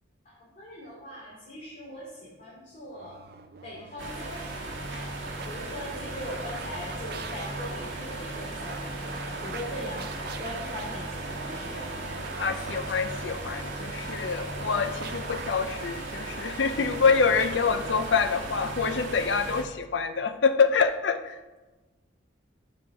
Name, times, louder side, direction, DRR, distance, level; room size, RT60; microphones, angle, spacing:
voice 1, 0.2-3.2 3.6-5.1 5.4-11.9, left 1 dB, 40° left, -7 dB, 2.7 m, -41 dB
sound 1, 2.9-18.6, right 5 dB, 55° right, 0.5 m, -46 dB
sound 2, 4.0-19.6, right 2 dB, 80° right, 1.5 m, -36 dB
voice 2, 12.4-21.4, left 5 dB, 70° left, 8 dB, 0.6 m, -26 dB
6.6 x 6.1 x 6.1 m, 1.2 s
head